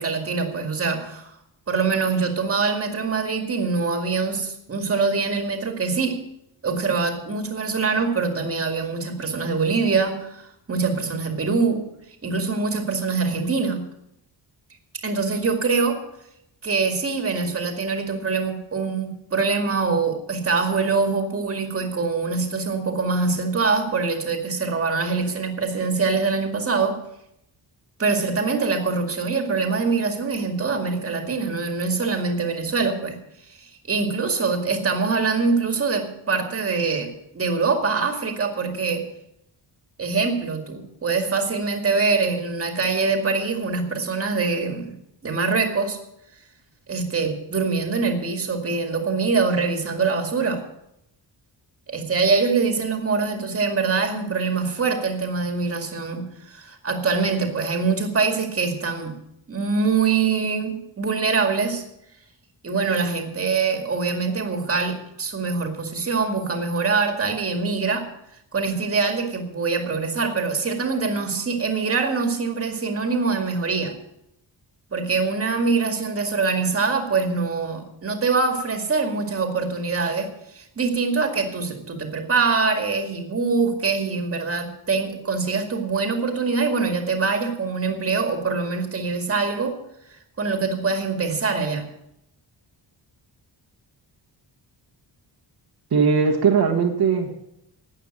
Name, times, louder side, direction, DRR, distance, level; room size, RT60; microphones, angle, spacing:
voice 1, 0.0-1.4 1.7-6.2 6.6-11.9 12.2-13.8 15.0-16.0 16.6-27.0 28.0-33.2 33.5-39.0 40.0-44.9 45.2-46.0 46.9-50.6 51.9-59.2 59.5-61.8 62.6-68.1 68.5-74.0 74.9-89.7 90.4-91.8, right 4 dB, 30° right, 4 dB, 2.1 m, -24 dB
voice 2, 95.9-97.3, right 6 dB, 55° right, 1 dB, 1.6 m, -19 dB
12.5 x 9.1 x 8.8 m, 0.81 s
wide cardioid pair, 170°, 44 cm